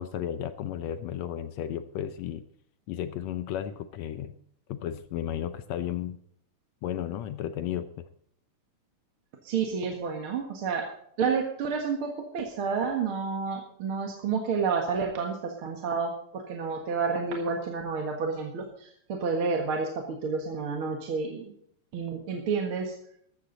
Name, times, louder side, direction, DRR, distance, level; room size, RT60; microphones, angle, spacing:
voice 1, 0.0-2.4 2.9-4.4 4.7-6.2 6.8-8.1, left 10 dB, 75° left, 12 dB, 1.7 m, -33 dB
voice 2, 9.4-10.9 11.2-21.5 21.9-23.0, right 5 dB, 50° right, 2 dB, 2.1 m, -30 dB
14.5 x 13.5 x 4.0 m, 0.66 s
omnidirectional pair, 3.7 m